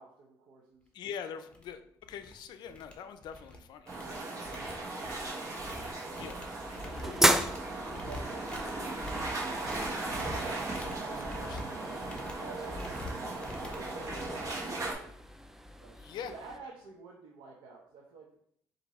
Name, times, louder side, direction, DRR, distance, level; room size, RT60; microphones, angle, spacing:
voice 1, 0.0-1.1 4.9-5.6 6.1-6.3 7.8-10.6 10.8-12.9 13.2-15.3 15.8-16.0 16.2-18.3, right 4 dB, 90° right, -2 dB, 0.8 m, -51 dB
voice 2, 0.9-3.9 6.1-6.4 11.3-11.6 16.0-16.3, left 7 dB, 70° left, 10 dB, 0.4 m, -43 dB
sound 1, 1.0-1.1 1.5-1.7 2.0-2.3 2.7-3.6 3.9-15.1, left 1 dB, 15° left, 1.0 m, -45 dB
sound 2, 3.9-14.9, right 2 dB, 45° right, 1.3 m, -37 dB
sound 3, 5.8-16.6, right 1 dB, 5° right, 0.4 m, -36 dB
4.7 x 2.7 x 4.1 m, 0.67 s
cardioid pair, 100°, 8 cm